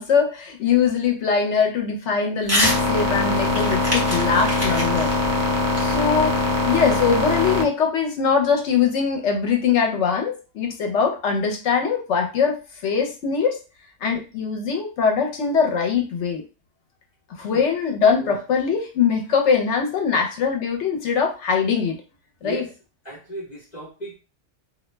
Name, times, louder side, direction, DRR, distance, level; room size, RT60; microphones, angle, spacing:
voice 1, 0.0-5.1 5.8-6.4 6.6-13.6 14.0-16.4 17.4-22.0 22.4-22.7, left 6 dB, 70° left, 3 dB, 0.9 m, -22 dB
Crumpling crinkling / Tearing, 2.4-2.8 3.1-6.5, left 1 dB, 15° right, 0.7 m, -26 dB
sound 1, 2.6-7.6, left 2 dB, 50° right, 0.7 m, -22 dB
voice 2, 23.0-24.2, right 1 dB, 40° left, -5 dB, 1.0 m, -35 dB
2.3 x 2.1 x 3.1 m, 0.31 s
omnidirectional pair, 1.3 m